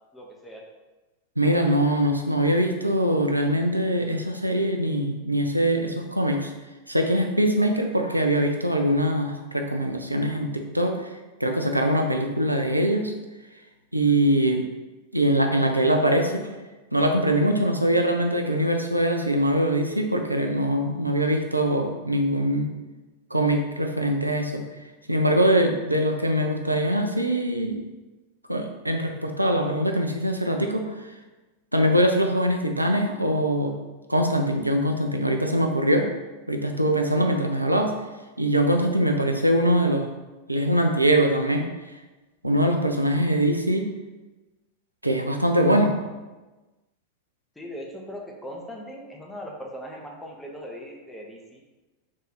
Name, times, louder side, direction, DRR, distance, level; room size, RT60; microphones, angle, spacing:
voice 1, 0.1-0.6 47.6-51.6, equal, 5° left, 0 dB, 0.7 m, -39 dB
voice 2, 1.4-6.5 6.9-11.1 11.4-13.2 13.9-14.7 15.1-16.5 16.9-22.8 23.3-24.6 25.1-27.8 28.5-31.1 31.7-33.8 34.1-36.1 36.5-38.0 38.4-40.1 40.5-41.7 42.4-43.9 45.0-46.0, right 1 dB, 90° right, 4 dB, 0.4 m, -23 dB
3.6 x 2.6 x 3.9 m, 1.2 s
figure-of-eight pair, 90°, 0 cm